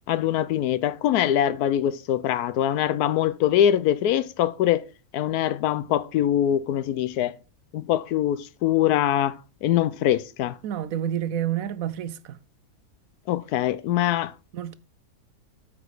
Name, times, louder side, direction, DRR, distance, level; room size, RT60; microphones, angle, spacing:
voice 1, 0.1-4.9 5.1-7.3 7.7-10.6 13.3-14.3, left 11 dB, 80° left, 1.1 m, -23 dB
voice 2, 10.6-12.4 14.5-14.7, right 10 dB, 70° right, 0.9 m, -29 dB
8.5 x 5.1 x 4.8 m
omnidirectional pair, 1.6 m